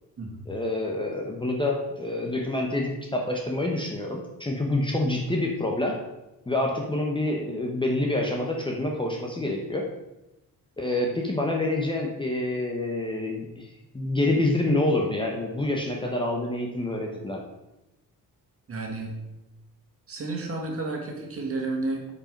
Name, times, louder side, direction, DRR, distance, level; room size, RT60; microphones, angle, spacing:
voice 1, 0.5-6.0 6.5-9.8 10.8-13.7 13.9-17.4, left 2 dB, 15° left, 0 dB, 0.9 m, -27 dB
voice 2, 18.7-19.2 20.1-22.1, right 2 dB, 35° right, 0 dB, 2.0 m, -31 dB
8.3 x 5.2 x 5.1 m, 0.99 s
cardioid pair, 135°, 37 cm